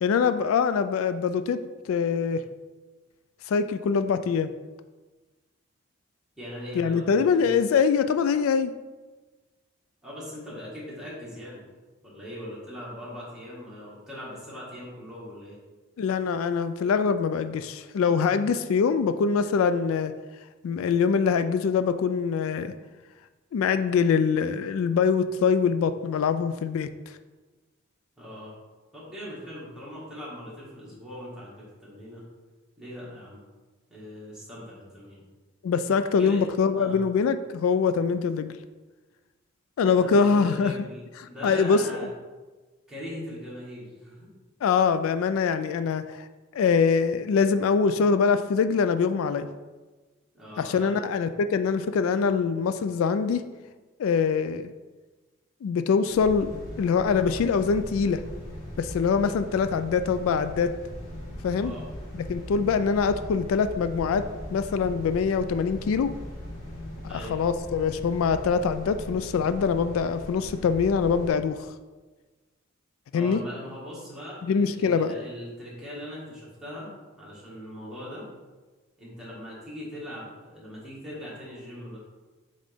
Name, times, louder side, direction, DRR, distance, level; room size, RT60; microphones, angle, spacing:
voice 1, 0.0-2.4 3.5-4.5 6.8-8.7 16.0-20.1 20.6-22.7 23.5-27.1 35.6-38.5 39.8-40.7 41.2-42.1 44.6-46.3 46.5-49.5 50.6-53.4 54.0-54.7 55.6-56.5 56.8-58.2 58.8-60.8 61.4-61.7 62.1-66.1 67.3-71.7 73.1-73.4 74.4-75.1, left 5 dB, 80° left, 11 dB, 0.3 m, -24 dB
voice 2, 6.4-7.5 10.0-11.6 12.0-15.6 28.2-28.5 28.9-32.2 32.8-33.4 33.9-35.2 36.2-36.5 36.8-37.0 40.0-42.1 42.9-44.3 50.3-51.1 61.5-61.9 67.1-67.4 73.1-76.9 77.2-78.3 79.0-82.0, equal, 5° right, -8 dB, 1.9 m, -40 dB
sound 1, 56.1-71.3, equal, 45° left, 1.8 m, -39 dB
7.4 x 3.9 x 3.6 m, 1.3 s
head